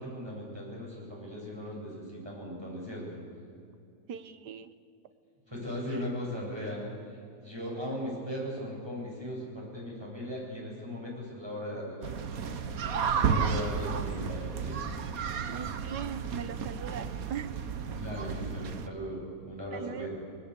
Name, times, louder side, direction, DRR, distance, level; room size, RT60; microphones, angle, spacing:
voice 1, 0.0-3.2 5.5-14.8 17.9-20.1, equal, 15° right, -4 dB, 8.0 m, -38 dB
voice 2, 4.1-4.7 5.9-6.1 15.5-17.5 19.7-20.1, right 8 dB, 80° right, 12 dB, 1.6 m, -40 dB
sound 1, 12.0-18.9, right 6 dB, 60° right, 1.5 m, -32 dB
25.5 x 20.5 x 8.3 m, 2.6 s
omnidirectional pair, 1.8 m